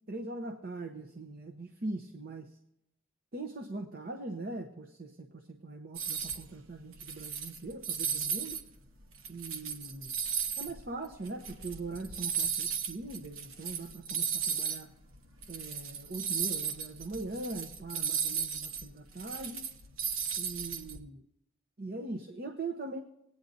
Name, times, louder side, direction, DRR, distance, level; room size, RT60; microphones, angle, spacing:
voice 1, 0.1-2.6 3.3-8.6 9.3-10.1 10.6-14.9 15.5-19.7 20.4-21.2 21.8-23.0, right 2 dB, 45° right, 6 dB, 0.8 m, -41 dB
sound 1, 5.9-6.5 6.9-8.6 9.0-14.8 15.1-15.2 15.4-21.0, right 7 dB, 85° right, 1.2 m, -35 dB
19.5 x 9.5 x 2.6 m, 0.82 s
head